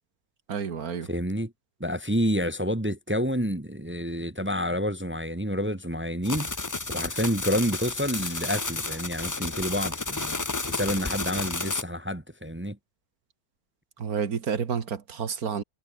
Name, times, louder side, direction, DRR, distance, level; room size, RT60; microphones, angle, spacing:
voice 1, 0.5-1.1 14.0-15.6, right 6 dB, 75° right, 2.1 m, -30 dB
voice 2, 1.1-1.5 1.8-6.5 6.9-10.4 10.7-12.8, equal, 10° right, 1.0 m, -28 dB
sound 1, 6.2-11.8, left 3 dB, 20° left, 0.6 m, -32 dB
omnidirectional pair, 1.6 m